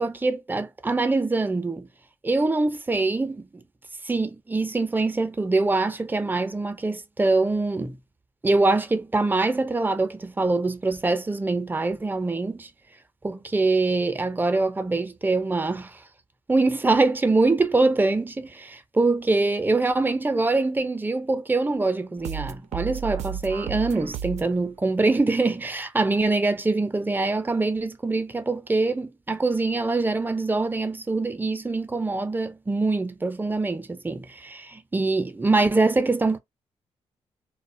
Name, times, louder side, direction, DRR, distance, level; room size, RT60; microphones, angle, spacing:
voice 1, 0.0-1.9 2.2-3.5 4.1-8.0 8.4-12.7 13.2-15.9 16.5-36.4, right 3 dB, 15° right, 0.5 m, -24 dB
sound 1, 22.2-24.6, right 9 dB, 80° right, 0.4 m, -33 dB
2.3 x 2.0 x 2.6 m
cardioid pair, 80°, 12 cm